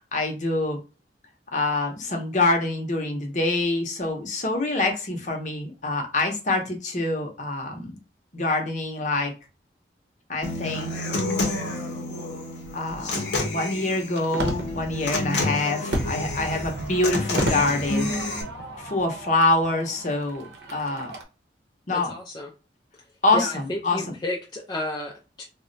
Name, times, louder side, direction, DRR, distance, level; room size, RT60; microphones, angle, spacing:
voice 1, 0.1-0.8 1.5-7.9 8.3-9.3 10.3-10.9 12.7-18.1 18.8-21.1 21.9-22.1 23.2-24.0, left 2 dB, 45° left, 0.7 m, -25 dB
Human voice / Acoustic guitar, 10.4-18.4, left 2 dB, 75° left, 0.7 m, -29 dB
Fireworks, 12.9-21.2, right 1 dB, 65° right, 0.7 m, -34 dB
voice 2, 21.9-22.5 23.3-25.4, left 2 dB, 25° left, 0.4 m, -32 dB
2.3 x 2.1 x 3.8 m
head